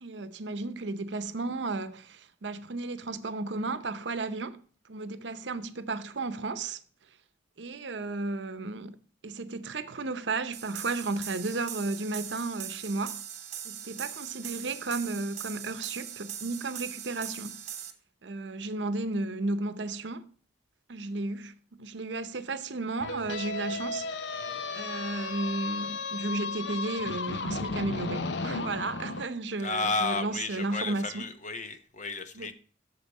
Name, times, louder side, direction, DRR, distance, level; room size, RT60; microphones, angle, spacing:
voice 1, 0.0-4.6 4.9-6.8 7.6-9.0 9.2-13.2 13.6-17.6 18.2-20.3 20.9-24.4 24.7-31.2 32.3-32.5, right 3 dB, 70° right, 0.7 m, -33 dB
sound 1, 10.5-17.9, right 9 dB, 40° right, 0.9 m, -41 dB
sound 2, 23.0-29.2, left 3 dB, 65° left, 0.7 m, -34 dB
voice 2, 29.6-32.5, left 3 dB, 40° left, 1.0 m, -32 dB
8.1 x 6.8 x 4.1 m
head